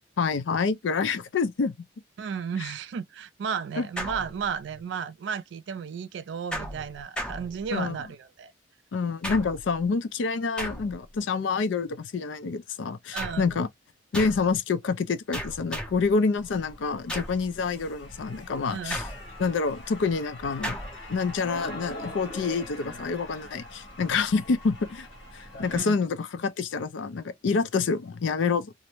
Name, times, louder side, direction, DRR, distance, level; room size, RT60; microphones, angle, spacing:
voice 1, 0.2-1.7 3.8-3.9 7.7-8.0 8.9-13.7 14.1-19.0 19.4-20.8 21.1-25.1 25.3-28.7, left 4 dB, 80° left, 0.4 m, -27 dB
voice 2, 2.2-8.5 13.1-13.4 18.7-19.0 25.7-26.0, right 6 dB, 70° right, 0.3 m, -33 dB
sound 1, 4.0-4.8 6.5-8.0 9.2-9.8 10.6-11.2 13.2-13.6 14.1-14.6 15.3-16.1 17.1-17.5 18.9-19.5 20.6-21.1, equal, 5° left, 0.5 m, -36 dB
sound 2, 16.4-25.8, left 1 dB, 65° left, 1.1 m, -43 dB
2.5 x 2.0 x 2.9 m
head